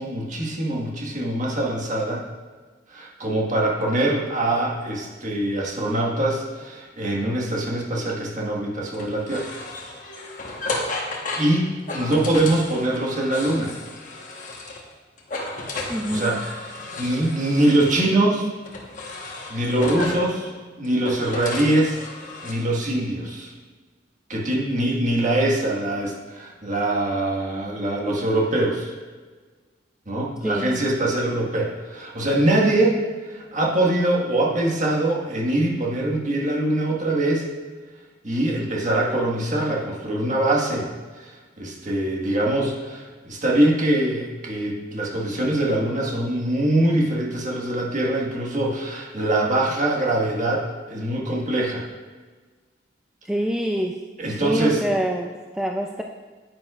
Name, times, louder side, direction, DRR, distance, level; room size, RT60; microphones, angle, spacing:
voice 1, 0.0-2.2 2.9-9.6 10.9-13.8 16.1-18.5 19.5-20.5 20.8-22.0 22.4-23.5 24.3-28.9 30.1-37.4 38.2-40.9 41.2-41.3 41.6-51.8 54.2-54.9, right 1 dB, 45° right, -3 dB, 1.6 m, -23 dB
sound 1, 8.9-14.9 15.2-18.0 18.6-20.3 20.8-22.5, left 2 dB, 45° left, 1.2 m, -33 dB
voice 2, 15.9-16.4 30.4-30.8 53.2-54.0 54.3-56.0, equal, 5° right, 1 dB, 0.3 m, -26 dB
9.7 x 9.5 x 2.4 m, 1.4 s
head